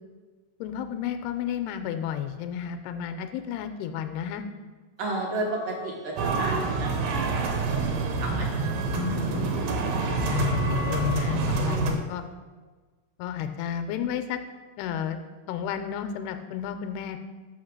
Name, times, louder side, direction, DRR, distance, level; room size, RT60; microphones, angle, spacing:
voice 1, 0.6-4.4 8.9-9.6 10.3-12.2 13.2-14.4 14.8-15.2 15.5-17.2, left 9 dB, 85° left, 8 dB, 2.4 m, -32 dB
Wind instrument woodwind instrument, 5.0-7.9 8.1-11.2, left 6 dB, 50° left, 0.6 m, -44 dB
voice 2, 5.0-7.5 8.2-8.7, right 2 dB, 65° right, -2 dB, 2.6 m, -32 dB
sound 1, 6.2-11.9, right 3 dB, 85° right, 3.0 m, -27 dB
6.5 x 6.0 x 6.4 m, 1.4 s
omnidirectional pair, 4.6 m